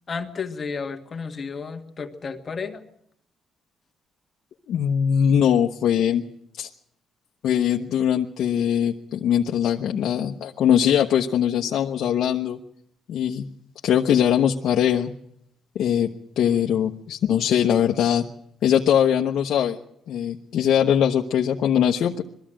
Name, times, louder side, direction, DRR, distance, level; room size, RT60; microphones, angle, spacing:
voice 1, 0.1-2.8, left 5 dB, 40° left, 4 dB, 1.7 m, -32 dB
voice 2, 4.7-6.2 6.6-6.7 7.4-12.6 13.1-13.5 13.8-15.1 15.7-18.2 18.6-19.8 20.1-22.2, left 9 dB, 70° left, 1 dB, 1.0 m, -21 dB
21.0 x 14.0 x 8.9 m, 0.77 s
cardioid pair, 90°, 0 cm